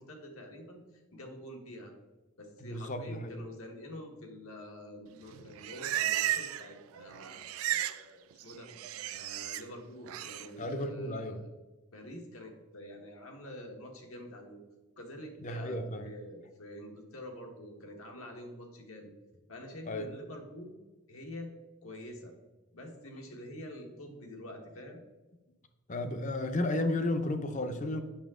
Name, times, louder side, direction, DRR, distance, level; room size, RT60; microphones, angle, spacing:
voice 1, 0.0-1.9 2.4-8.7 9.1-11.5 11.9-14.6 15.0-19.1 19.5-20.7 21.1-21.5 21.8-22.3 22.7-25.0, left 1 dB, 80° left, 2 dB, 1.3 m, -47 dB
voice 2, 2.6-3.4 10.6-11.4 15.4-16.1 19.9-20.1 25.9-28.0, left 1 dB, 35° left, 8 dB, 0.6 m, -33 dB
Livestock farm animals working animals, 5.3-6.7 7.0-8.0 8.3-9.6 10.1-10.5, right 12 dB, 80° right, 0.3 m, -34 dB
7.3 x 5.8 x 3.6 m, 1.1 s
head